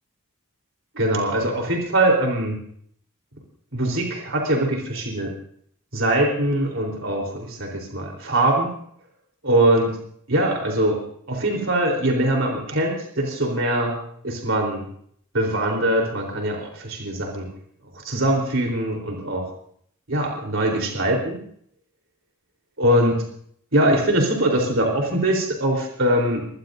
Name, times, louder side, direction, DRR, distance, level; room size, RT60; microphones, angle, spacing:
voice 1, 0.9-2.6 3.7-5.3 5.9-8.7 9.4-10.0 10.3-10.9 11.3-14.0 14.2-14.8 15.3-17.5 18.0-19.5 20.1-21.4 22.8-23.2 23.7-26.5, right 1 dB, 65° right, 1 dB, 3.9 m, -22 dB
23.0 x 19.0 x 2.7 m, 0.65 s
head